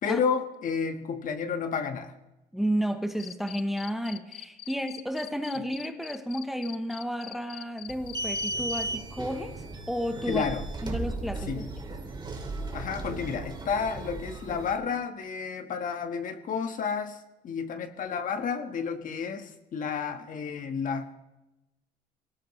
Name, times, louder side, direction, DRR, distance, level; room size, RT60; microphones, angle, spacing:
voice 1, 0.0-2.1 10.3-10.6 11.5-11.7 12.7-17.2 17.4-21.1, left 6 dB, 50° left, 7 dB, 1.6 m, -31 dB
voice 2, 2.5-10.5 10.8-11.7, equal, ahead, 7 dB, 1.0 m, -32 dB
Cricket, 3.2-8.8, left 14 dB, 70° left, 0.7 m, -43 dB
sound 1, 7.9-14.8, right 2 dB, 25° right, 2.6 m, -36 dB
22.5 x 18.0 x 3.2 m, 0.98 s
cardioid pair, 110°, 17 cm